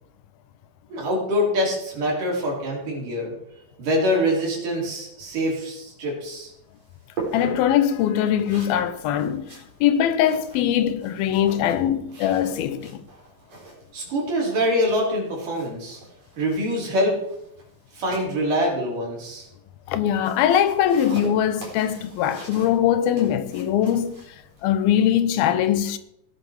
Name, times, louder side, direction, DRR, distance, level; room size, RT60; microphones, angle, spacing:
voice 1, 0.9-3.3 3.8-6.5 13.9-16.0 16.4-17.2 17.9-19.5, equal, 65° right, 5.9 m, -24 dB
sound 1, 6.2-25.0, right 3 dB, 45° right, 5.2 m, -42 dB
voice 2, 7.3-13.0 19.9-24.4 24.6-26.0, left 10 dB, 85° left, 2.8 m, -22 dB
17.0 x 10.0 x 4.9 m
omnidirectional pair, 4.1 m